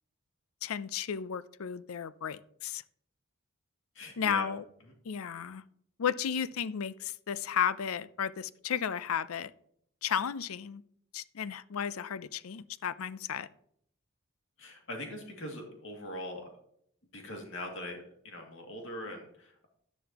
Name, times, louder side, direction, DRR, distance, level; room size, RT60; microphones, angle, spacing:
voice 1, 0.6-2.8 4.2-4.6 5.0-5.6 6.0-9.5 10.0-10.8 11.1-13.5, left 8 dB, 80° left, 0.5 m, -33 dB
voice 2, 3.9-4.5 14.6-16.5 17.1-19.7, left 1 dB, 60° left, 2.4 m, -41 dB
11.5 x 10.5 x 2.9 m
head